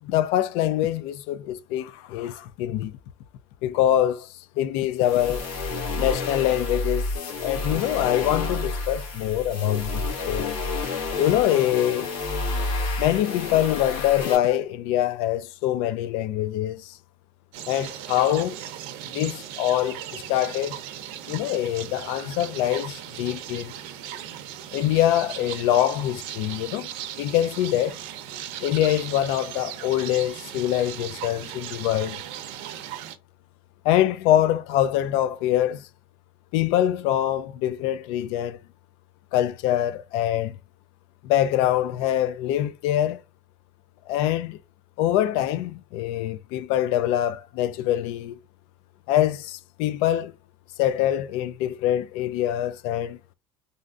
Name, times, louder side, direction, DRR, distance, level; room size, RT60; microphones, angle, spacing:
voice 1, 0.0-3.0 3.6-5.4 6.0-10.6 11.2-12.1 13.0-17.0 17.7-18.6 19.1-20.8 21.3-23.7 24.7-26.9 27.2-28.0 28.6-32.2 33.8-35.9 36.5-38.6 39.3-40.6 41.2-43.2 44.1-44.6 45.0-48.4 49.1-50.3 50.8-53.2, left 12 dB, 75° left, 0.4 m, -24 dB
sound 1, 5.0-14.4, left 3 dB, 60° left, 1.8 m, -30 dB
sound 2, 17.5-33.2, right 11 dB, 75° right, 0.6 m, -38 dB
3.4 x 2.6 x 2.5 m
cardioid pair, 165°, 10 cm